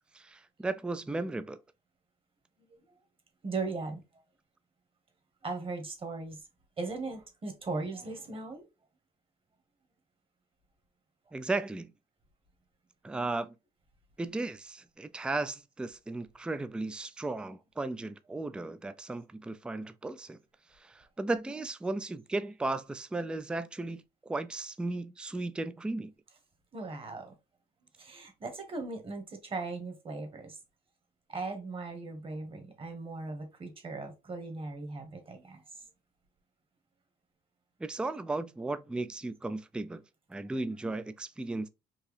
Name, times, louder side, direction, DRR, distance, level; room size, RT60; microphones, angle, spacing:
voice 1, 0.1-1.6 11.3-11.9 13.0-13.5 14.2-20.4 20.7-26.1 37.8-40.0 40.3-41.7, right 2 dB, 5° right, 0.3 m, -35 dB
voice 2, 3.4-4.0 5.4-6.4 6.8-8.7 26.7-27.3 28.0-30.6 31.3-35.9, right 3 dB, 30° right, 1.5 m, -38 dB
4.6 x 2.9 x 3.2 m
cardioid pair, 110°, 17 cm